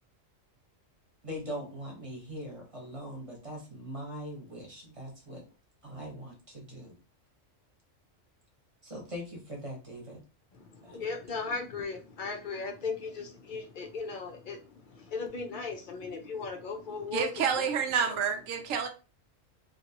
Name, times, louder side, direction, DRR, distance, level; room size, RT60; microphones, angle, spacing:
voice 1, 1.2-5.4 5.8-6.9 8.8-10.2 10.8-11.0, equal, 30° right, 0.9 m, -41 dB
voice 2, 10.5-17.7 18.0-18.2, left 4 dB, 60° left, 0.5 m, -37 dB
voice 3, 17.1-18.9, right 7 dB, 85° right, 1.0 m, -29 dB
2.7 x 2.5 x 2.7 m
omnidirectional pair, 1.3 m